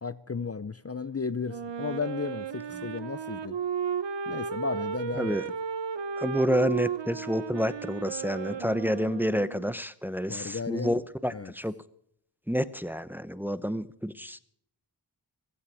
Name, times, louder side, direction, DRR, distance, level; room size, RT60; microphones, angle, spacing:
voice 1, 0.0-3.6 4.3-5.4 10.3-11.0 11.3-11.5, left 5 dB, 35° left, 0.6 m, -34 dB
Wind instrument woodwind instrument, 1.4-9.8, right 7 dB, 75° right, 0.9 m, -34 dB
voice 2, 5.2-5.5 6.2-11.7 12.5-14.4, equal, 5° right, 0.8 m, -29 dB
16.0 x 16.0 x 4.8 m
wide cardioid pair, 80°, 43 cm